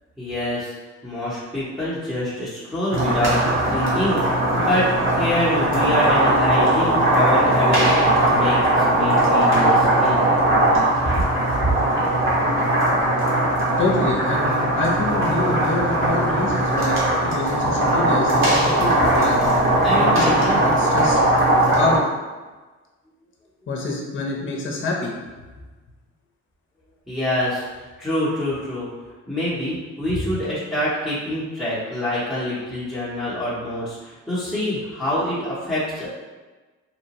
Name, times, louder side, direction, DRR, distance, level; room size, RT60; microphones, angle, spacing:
voice 1, 0.2-0.7 1.0-3.4 3.7-4.9 5.2-8.0 8.3-10.3 11.6-11.7 19.8-20.6 27.1-28.9 29.3-36.1, left 1 dB, ahead, -11 dB, 0.8 m, -25 dB
sound 1, 2.9-22.0, right 1 dB, 40° right, 1.1 m, -19 dB
voice 2, 13.8-19.4 20.0-21.2 21.5-22.0 23.7-25.1 30.1-30.3, left 2 dB, 40° left, -1 dB, 0.6 m, -26 dB
2.9 x 2.1 x 2.8 m, 1.3 s
cardioid pair, 90°, 30 cm